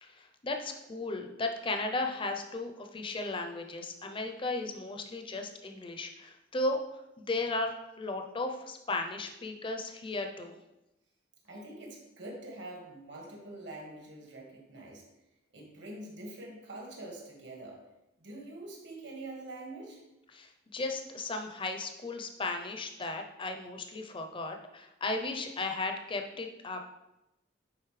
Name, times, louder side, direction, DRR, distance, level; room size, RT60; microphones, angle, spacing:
voice 1, 0.0-6.8 7.2-10.6 20.3-26.8, left 2 dB, 25° left, 5 dB, 0.6 m, -35 dB
voice 2, 11.4-15.0 15.5-17.8 18.2-20.0, right 2 dB, 70° right, -2 dB, 1.8 m, -45 dB
9.5 x 4.0 x 3.3 m, 0.94 s
head